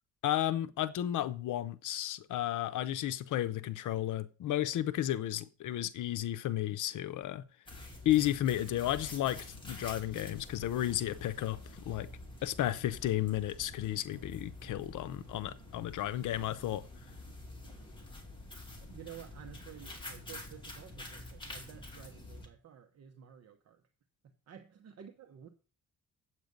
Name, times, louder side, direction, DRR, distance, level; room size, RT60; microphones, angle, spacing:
voice 1, 0.2-7.4 8.0-11.6 11.8-12.1 12.4-16.8, left 13 dB, 75° left, 0.7 m, -33 dB
sound 1, 7.7-22.5, left 2 dB, 15° left, 2.4 m, -48 dB
voice 2, 18.8-23.8 24.2-25.5, right 9 dB, 55° right, 1.0 m, -52 dB
9.3 x 8.0 x 5.2 m
cardioid pair, 150°, 31 cm